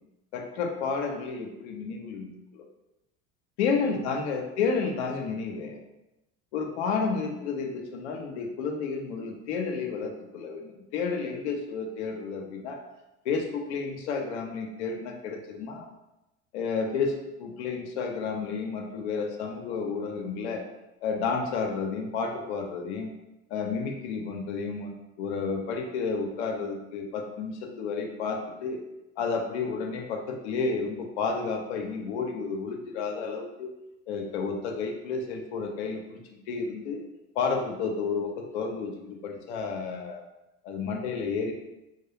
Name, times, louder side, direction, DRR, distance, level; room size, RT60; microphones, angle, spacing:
voice 1, 0.3-2.6 3.6-5.8 6.5-12.8 13.3-15.9 16.5-20.6 21.0-23.1 23.5-24.9 25.2-28.8 29.2-33.7 34.1-36.2 36.5-37.0 37.4-40.2 40.6-41.5, left 5 dB, 80° left, 2 dB, 0.5 m, -31 dB
2.3 x 2.0 x 2.9 m, 0.94 s
hypercardioid pair, 75°, 33 cm